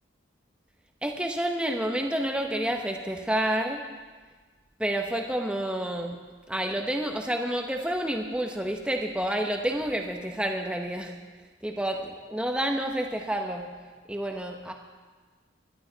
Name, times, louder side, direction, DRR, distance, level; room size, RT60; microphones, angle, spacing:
voice 1, 1.0-3.8 4.8-6.2 6.5-11.2 11.6-13.7 14.1-14.7, right 1 dB, 5° right, 2 dB, 0.9 m, -29 dB
21.0 x 12.0 x 4.0 m, 1.4 s
head